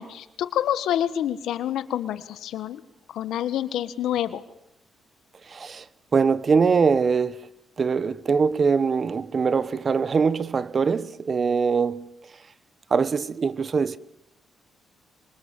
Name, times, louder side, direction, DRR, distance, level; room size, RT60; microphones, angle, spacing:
voice 1, 0.0-2.8 3.1-4.4, left 11 dB, 85° left, 1.5 m, -27 dB
voice 2, 5.5-5.8 6.1-7.4 7.8-12.0 12.9-14.0, right 5 dB, 40° right, 1.0 m, -22 dB
25.5 x 25.0 x 7.6 m
cardioid pair, 100°, 0 cm